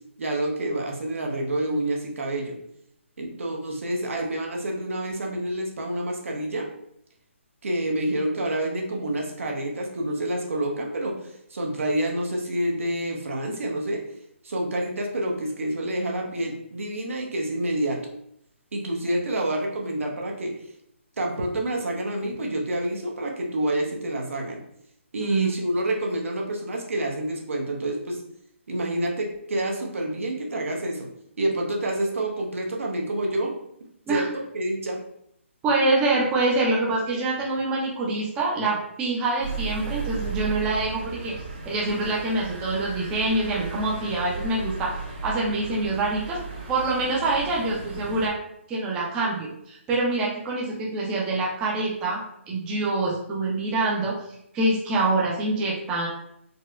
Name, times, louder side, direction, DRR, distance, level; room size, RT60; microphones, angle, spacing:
voice 1, 0.2-2.6 3.2-6.7 7.6-14.0 14.4-18.0 18.7-20.5 21.2-24.6 25.1-28.2 28.7-31.1 31.4-33.5 34.1-35.0, right 1 dB, 75° right, 0 dB, 0.8 m, -28 dB
voice 2, 25.2-25.6 34.1-34.3 35.6-41.3 41.7-45.0 45.2-46.4 46.7-48.4 48.7-54.2 54.5-56.1, right 2 dB, 10° right, -4 dB, 0.4 m, -25 dB
sound 1, 39.4-48.3, right 4 dB, 35° right, 1.0 m, -35 dB
4.1 x 2.1 x 2.4 m, 0.73 s
hypercardioid pair, 160°, 7 cm